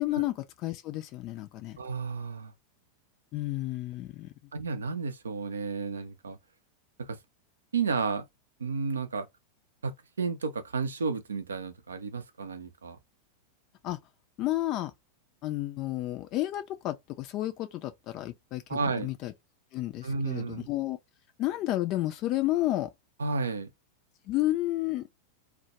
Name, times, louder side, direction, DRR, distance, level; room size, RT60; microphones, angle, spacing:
voice 1, 0.0-1.8 3.3-4.3 13.8-14.0 14.4-14.9 15.4-19.3 19.7-21.0 21.4-22.9 24.3-25.1, left 16 dB, 40° left, 0.4 m, -31 dB
voice 2, 1.8-2.5 4.5-6.4 7.0-7.2 7.7-8.3 8.6-9.3 9.8-13.0 18.7-19.1 20.0-20.7 23.2-23.7, right 4 dB, 70° right, 0.4 m, -32 dB
2.1 x 2.1 x 2.8 m
figure-of-eight pair, 90°, 0 cm